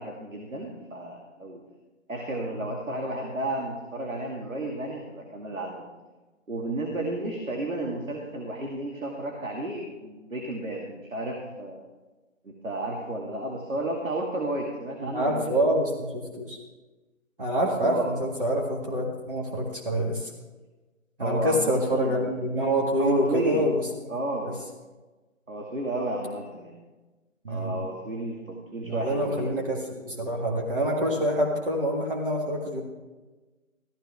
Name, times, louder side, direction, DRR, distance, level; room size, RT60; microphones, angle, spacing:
voice 1, 0.0-1.6 2.1-5.9 6.5-11.8 12.4-15.6 17.8-18.1 21.2-22.4 23.0-23.8 24.1-24.6 25.5-26.8 27.5-29.5, right 1 dB, 80° right, 0 dB, 2.4 m, -32 dB
voice 2, 15.0-16.6 17.4-20.3 21.2-23.8 27.4-27.8 28.8-32.8, equal, 40° right, -2 dB, 2.1 m, -26 dB
15.0 x 13.0 x 3.5 m, 1.2 s
figure-of-eight pair, 165°, 39 cm